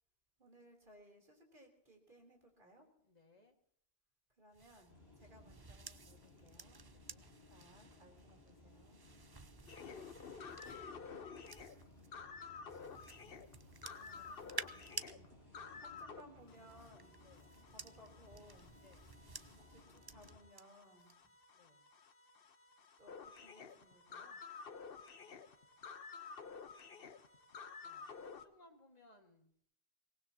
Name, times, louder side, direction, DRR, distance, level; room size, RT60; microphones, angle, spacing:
voice 1, 0.4-2.9 4.4-6.8 7.5-9.0 12.8-13.0 13.9-15.4 15.8-17.2 17.7-18.7 19.7-21.1 23.0-24.4, equal, 50° right, 1 dB, 3.8 m, -63 dB
voice 2, 3.0-3.6 6.8-7.3 15.7-15.8 17.1-17.5 18.7-19.2 21.5-21.9 27.8-29.5, left 2 dB, 40° left, 3 dB, 2.1 m, -66 dB
sound 1, 4.5-12.1 12.7-15.1 16.4-20.6 21.0-21.3, right 4 dB, 30° right, 0.5 m, -53 dB
sound 2, 4.9-20.4, left 2 dB, 75° right, 6.3 m, -62 dB
sound 3, 9.7-16.2 16.5-28.5, left 5 dB, 60° left, 1.2 m, -52 dB
24.0 x 19.0 x 2.9 m, 0.66 s
omnidirectional pair, 1.1 m